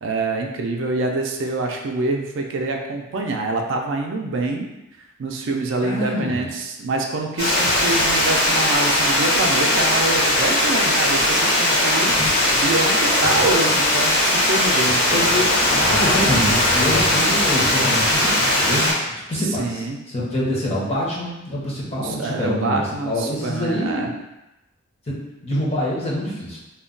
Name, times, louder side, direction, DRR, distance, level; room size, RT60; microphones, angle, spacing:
voice 1, 0.0-4.7 5.0-15.2 19.6-20.0 22.0-24.1, right 2 dB, 65° right, 2 dB, 0.4 m, -26 dB
voice 2, 5.8-6.5 15.1-19.8 20.1-22.8 23.1-24.1 25.1-25.2 25.4-26.6, equal, 30° left, -6 dB, 0.8 m, -25 dB
Water, 7.4-18.9, left 1 dB, 55° left, 1.1 m, -19 dB
2.2 x 2.2 x 3.7 m, 0.96 s
head